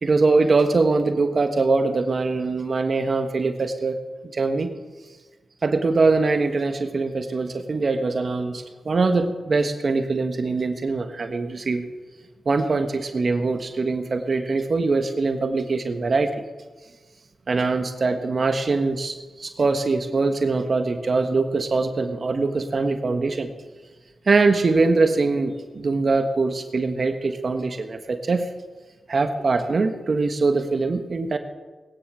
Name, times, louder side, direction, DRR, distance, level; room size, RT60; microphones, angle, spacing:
voice 1, 0.0-4.0 4.3-4.7 5.6-11.8 12.4-16.4 17.5-23.5 24.3-28.5 29.1-31.4, right 3 dB, 60° right, 7 dB, 1.4 m, -22 dB
20.0 x 9.9 x 6.3 m, 1.3 s
supercardioid pair, 40°, 0 cm